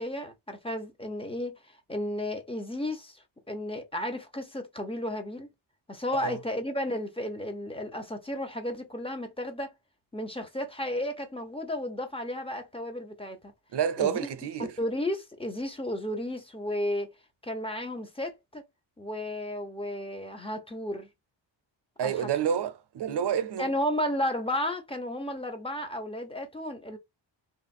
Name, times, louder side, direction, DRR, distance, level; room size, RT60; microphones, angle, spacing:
voice 1, 0.0-1.6 1.9-5.5 5.9-9.7 10.1-13.4 14.0-14.3 14.8-17.1 17.4-18.6 19.0-21.1 22.0-22.3 23.6-27.0, left 1 dB, 10° left, 0.7 m, -33 dB
voice 2, 13.7-14.7 22.0-23.7, right 8 dB, 60° right, 0.6 m, -29 dB
3.4 x 2.5 x 4.1 m
wide cardioid pair, 175°, 47 cm